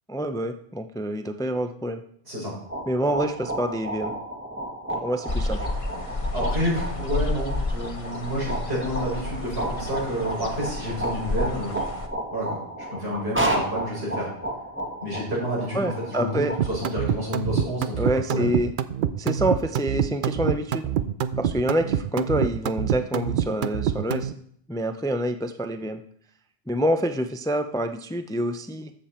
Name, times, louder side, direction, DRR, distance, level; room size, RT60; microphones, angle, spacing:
voice 1, 0.1-2.0 2.9-4.1 5.0-5.7 15.7-16.5 18.0-18.7 19.2-20.9 21.4-24.3 24.7-26.0 26.7-28.9, right 1 dB, 5° left, 8 dB, 0.4 m, -27 dB
sound 1, 2.5-16.6, right 1 dB, 10° right, 1.5 m, -32 dB
sound 2, 5.3-12.1, left 2 dB, 35° left, 1.0 m, -31 dB
voice 2, 6.3-11.8 12.3-12.6 12.9-14.3 15.0-16.4 16.7-18.0 18.3-18.5, equal, 85° right, -6 dB, 6.3 m, -29 dB
sound 3, 16.6-24.3, right 9 dB, 60° right, 0.7 m, -26 dB
13.5 x 7.6 x 4.4 m, 0.65 s
omnidirectional pair, 1.0 m